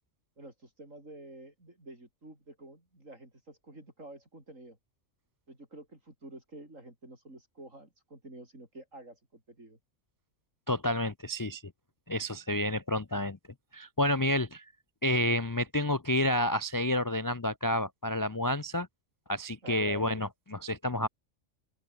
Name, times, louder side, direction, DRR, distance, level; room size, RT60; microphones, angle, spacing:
voice 1, 0.4-4.8 5.5-9.8 19.6-20.2, right 1 dB, 70° right, 8.0 m, -49 dB
voice 2, 10.7-11.6 12.1-13.4 13.7-14.6 15.0-18.9 19.3-21.1, left 1 dB, 25° left, 0.4 m, -29 dB
open air
omnidirectional pair, 1.4 m